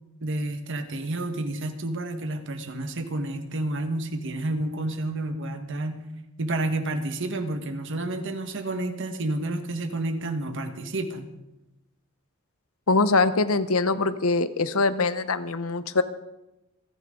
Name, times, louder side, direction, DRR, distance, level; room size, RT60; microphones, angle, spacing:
voice 1, 0.2-6.0 6.4-11.3, right 2 dB, 60° right, 7 dB, 1.6 m, -30 dB
voice 2, 12.9-16.0, left 3 dB, 90° left, 13 dB, 0.9 m, -23 dB
27.5 x 10.5 x 3.9 m, 0.97 s
head